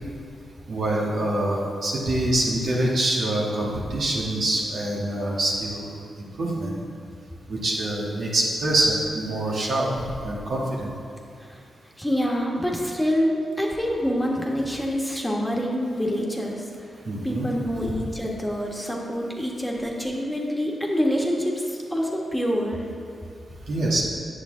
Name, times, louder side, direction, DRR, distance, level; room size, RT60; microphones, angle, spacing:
voice 1, 0.7-5.9 6.4-6.7 7.5-10.9 17.0-17.5 23.7-24.0, right 1 dB, 70° right, -5 dB, 1.7 m, -25 dB
voice 2, 12.0-16.6 17.2-22.8, equal, 10° left, -2 dB, 1.6 m, -26 dB
8.3 x 6.6 x 3.9 m, 2.5 s
supercardioid pair, 40°, 0 cm